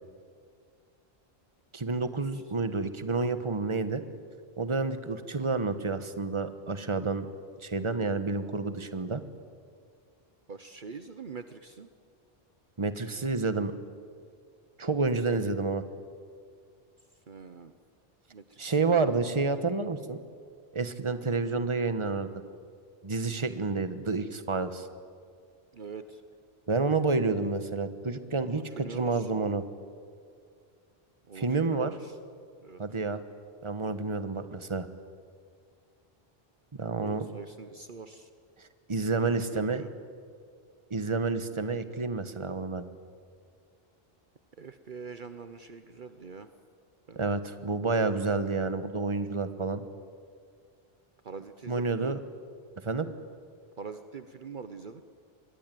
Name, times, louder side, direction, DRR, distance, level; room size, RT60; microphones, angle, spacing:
voice 1, 1.7-4.0 4.6-7.3 7.6-9.2 12.8-13.7 14.8-15.8 18.6-20.2 20.7-22.3 23.0-24.9 26.7-29.6 31.3-31.9 32.8-33.2 33.6-34.9 36.7-37.3 38.6-39.8 40.9-42.8 47.1-49.8 51.7-52.2 52.8-53.1, right 3 dB, 30° right, 11 dB, 1.3 m, -29 dB
voice 2, 10.5-11.9 15.3-15.5 17.3-17.7 18.3-19.2 21.3-21.4 25.7-26.2 28.4-29.3 31.3-32.1 32.6-32.8 37.0-38.3 39.2-39.9 44.6-46.5 47.1-47.2 51.2-52.2 53.8-55.0, right 5 dB, 55° right, 10 dB, 1.1 m, -44 dB
26.0 x 21.5 x 9.3 m, 2.1 s
omnidirectional pair, 1.0 m